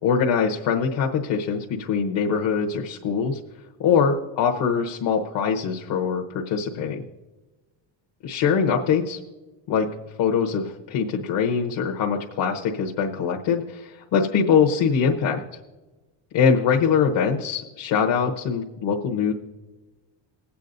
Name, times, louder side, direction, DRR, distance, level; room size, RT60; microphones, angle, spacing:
voice 1, 0.0-3.4 3.8-7.0 8.2-9.2 9.7-9.9 10.2-15.4 16.3-19.3, left 6 dB, 65° left, 1 dB, 1.1 m, -23 dB
21.0 x 8.4 x 2.6 m, 1.2 s
cardioid pair, 145°, 47 cm